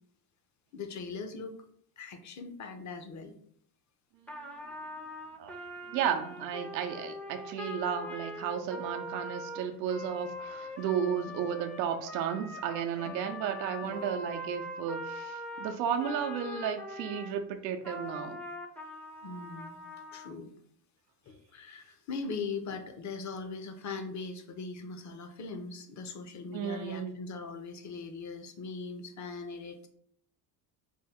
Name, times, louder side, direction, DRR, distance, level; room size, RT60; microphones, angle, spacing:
voice 1, 0.7-1.6 2.0-3.4 13.0-13.2 13.8-14.1 19.2-19.9 20.1-20.5 21.3-29.9, left 4 dB, 35° left, 7 dB, 0.7 m, -40 dB
Trumpet, 4.3-17.4 17.8-20.3, left 1 dB, 5° left, 0.5 m, -42 dB
voice 2, 5.9-18.4 26.5-27.1, right 8 dB, 90° right, 5 dB, 0.6 m, -33 dB
4.5 x 2.2 x 3.5 m, 0.66 s
supercardioid pair, 80°, 49 cm